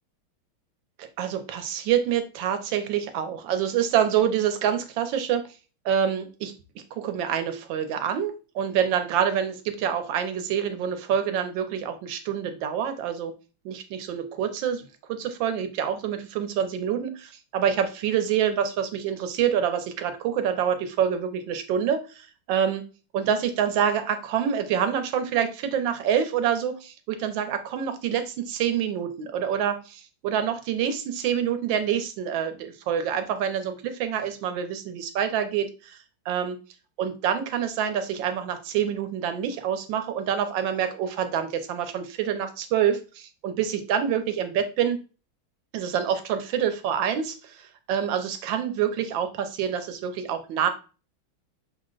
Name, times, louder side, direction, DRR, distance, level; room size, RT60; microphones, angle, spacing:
voice 1, 1.0-5.4 5.8-6.5 6.9-13.3 13.6-14.8 15.1-22.8 23.1-36.0 36.3-36.6 37.0-45.0 45.7-50.7, right 8 dB, 75° right, 8 dB, 1.4 m, -26 dB
6.2 x 2.1 x 3.8 m, 0.34 s
omnidirectional pair, 2.2 m